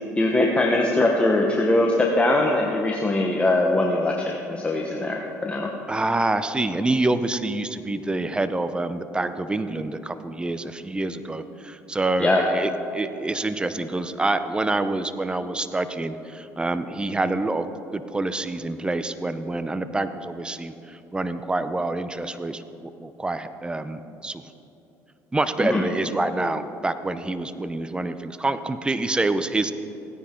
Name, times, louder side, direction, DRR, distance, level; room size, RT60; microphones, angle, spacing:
voice 1, 0.2-5.7 12.2-12.5 25.6-25.8, left 2 dB, 20° left, 0 dB, 1.2 m, -21 dB
voice 2, 5.9-17.7 17.9-24.4 25.3-29.7, right 2 dB, 15° right, 11 dB, 0.7 m, -27 dB
16.0 x 9.9 x 3.8 m, 2.9 s
supercardioid pair, 80°, 7 cm